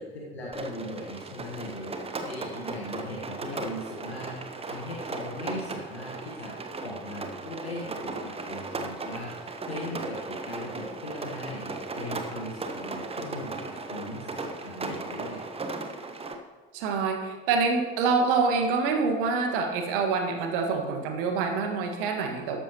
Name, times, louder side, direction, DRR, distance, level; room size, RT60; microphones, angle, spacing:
voice 1, 0.0-15.5, left 1 dB, 80° left, -3 dB, 1.4 m, -39 dB
Rain, 0.5-16.3, right 3 dB, 20° right, 1.1 m, -37 dB
voice 2, 16.7-22.6, right 4 dB, 60° right, 4 dB, 1.7 m, -26 dB
13.0 x 11.5 x 3.0 m, 1.3 s
figure-of-eight pair, 60°, 31 cm